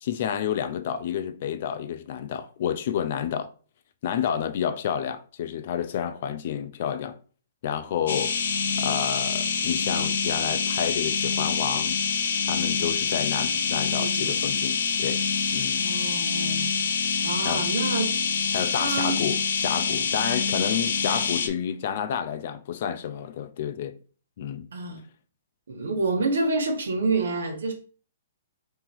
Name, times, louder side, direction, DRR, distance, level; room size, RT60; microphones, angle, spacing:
voice 1, 0.0-3.5 4.0-7.2 7.6-8.4 8.8-12.0 12.5-15.2 15.5-15.8 17.0-17.2 17.4-17.7 18.5-19.4 19.6-24.0 24.4-24.7, left 9 dB, 45° left, 0.5 m, -30 dB
sound 1, 8.1-21.5, left 5 dB, 90° left, 0.7 m, -26 dB
voice 2, 14.0-14.3 15.7-16.7 17.2-18.1 18.7-19.2 24.7-25.0 25.7-27.7, right 3 dB, 90° right, 1.5 m, -28 dB
3.9 x 2.9 x 4.4 m
hypercardioid pair, 165°, 0 cm